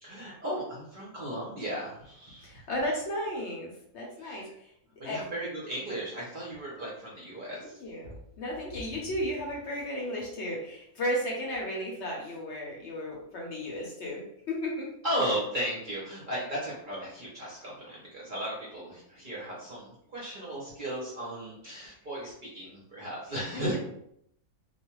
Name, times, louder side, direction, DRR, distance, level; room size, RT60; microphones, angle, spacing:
voice 1, 0.0-2.4 4.2-4.5 5.0-7.8 15.0-23.8, right 1 dB, 45° right, -6 dB, 0.7 m, -35 dB
voice 2, 2.4-4.5 5.0-5.2 7.6-14.9 23.5-23.8, equal, 60° left, -2 dB, 0.9 m, -34 dB
2.4 x 2.2 x 3.0 m, 0.73 s
omnidirectional pair, 1.5 m